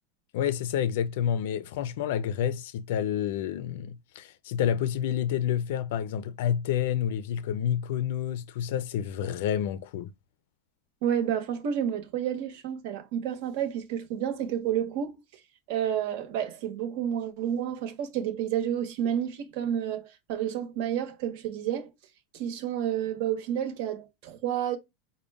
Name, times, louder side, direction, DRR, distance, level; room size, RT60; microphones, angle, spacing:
voice 1, 0.3-10.1, left 9 dB, 70° left, 0.4 m, -29 dB
voice 2, 11.0-15.2 15.7-21.9 22.3-24.8, right 9 dB, 55° right, 0.9 m, -30 dB
5.1 x 2.1 x 3.4 m
supercardioid pair, 175°, 0 cm